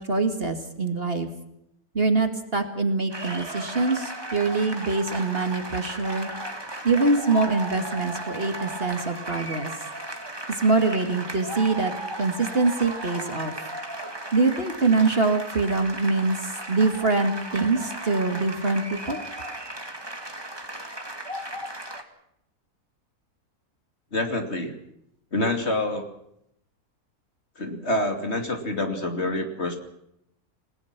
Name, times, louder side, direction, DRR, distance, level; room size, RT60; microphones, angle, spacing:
voice 1, 0.0-1.3 1.9-6.3 6.8-9.7 10.6-11.9 12.2-13.5 14.3-19.2, right 3 dB, 40° right, 6 dB, 2.4 m, -24 dB
sound 1, 3.1-22.0, right 1 dB, 15° right, 2.1 m, -36 dB
voice 2, 24.1-24.8 25.3-26.0 27.6-29.8, left 1 dB, 45° left, 5 dB, 2.9 m, -27 dB
29.0 x 18.5 x 6.0 m, 0.77 s
omnidirectional pair, 1.6 m